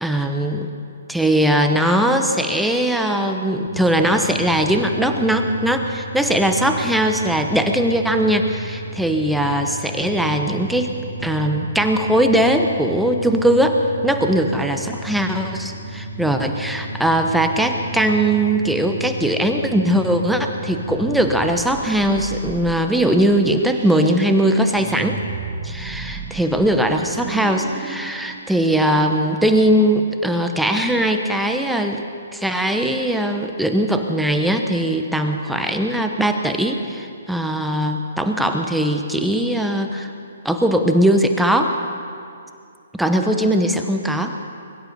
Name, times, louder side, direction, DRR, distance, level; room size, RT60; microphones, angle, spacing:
voice 1, 0.0-0.7 1.1-10.9 11.2-13.8 14.0-25.2 25.6-32.0 32.3-40.1 40.4-41.8 43.0-44.4, right 1 dB, ahead, 4 dB, 0.9 m, -20 dB
sound 1, 3.7-21.6, right 1 dB, 65° right, 2.8 m, -33 dB
sound 2, 20.8-29.4, right 5 dB, 30° right, 1.5 m, -35 dB
22.0 x 12.0 x 5.4 m, 2.3 s
hypercardioid pair, 135°, 0 cm